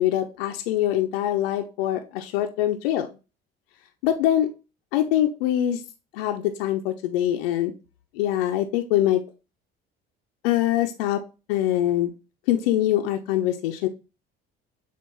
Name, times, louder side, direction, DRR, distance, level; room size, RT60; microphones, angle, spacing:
voice 1, 0.0-3.1 4.0-4.5 4.9-5.8 6.1-7.7 8.1-9.2 10.4-11.2 11.5-12.1 12.5-13.9, left 12 dB, 80° left, 5 dB, 0.6 m, -23 dB
6.9 x 2.4 x 3.0 m, 0.30 s
hypercardioid pair, 60°, 29 cm